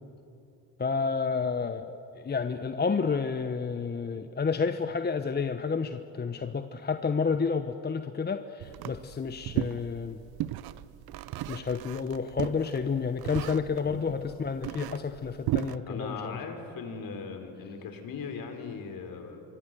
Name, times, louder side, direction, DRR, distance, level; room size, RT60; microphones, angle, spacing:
voice 1, 0.8-10.2 11.5-16.4, left 5 dB, 25° left, 9 dB, 1.0 m, -30 dB
sound 1, 8.6-15.8, right 14 dB, 55° right, 0.9 m, -36 dB
voice 2, 13.8-14.2 15.8-19.4, left 5 dB, 50° left, 5 dB, 4.4 m, -39 dB
26.5 x 23.5 x 6.9 m, 2.8 s
supercardioid pair, 75°, 43 cm